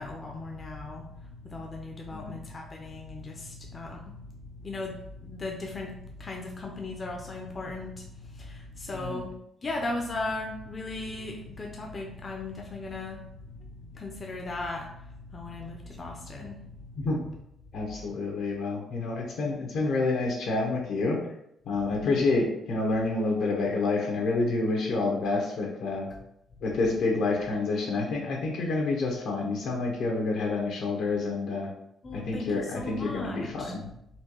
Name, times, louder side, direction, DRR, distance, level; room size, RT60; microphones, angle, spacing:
voice 1, 0.0-9.3 9.6-17.1 17.7-18.1 21.8-22.3 26.1-26.2 26.6-26.7 32.0-33.7, left 2 dB, 35° left, 1 dB, 0.5 m, -37 dB
voice 2, 17.7-21.2 21.7-26.1 26.6-31.7 32.1-33.9, left 3 dB, 75° left, 0 dB, 1.0 m, -28 dB
4.3 x 2.3 x 3.0 m, 0.77 s
cardioid pair, 90°, 0 cm